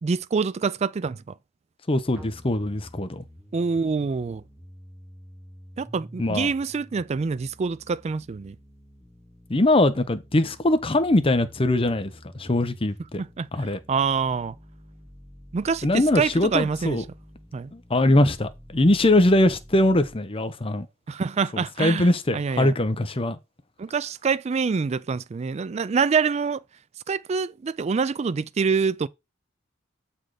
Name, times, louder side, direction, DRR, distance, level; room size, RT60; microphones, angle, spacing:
voice 1, 0.0-1.3 3.5-4.4 5.8-8.6 13.2-14.6 15.5-17.0 17.5-17.7 21.1-22.7 23.8-26.6 27.1-29.1, right 5 dB, 35° right, 0.3 m, -26 dB
voice 2, 1.9-3.2 6.2-6.5 9.5-13.2 13.5-13.8 15.8-17.0 17.7-20.9 21.5-23.4, left 1 dB, 30° left, 0.7 m, -22 dB
sound 1, 2.2-20.2, equal, 10° right, 2.2 m, -49 dB
7.4 x 4.2 x 4.8 m
head